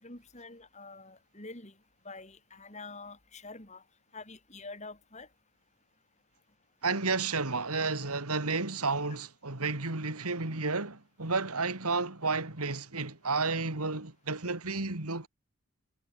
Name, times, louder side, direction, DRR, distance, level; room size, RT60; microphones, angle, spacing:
voice 1, 0.0-1.7 2.0-3.8 4.1-5.3, left 3 dB, 30° left, 5.4 m, -46 dB
voice 2, 6.8-15.3, right 3 dB, 90° right, 3.0 m, -32 dB
head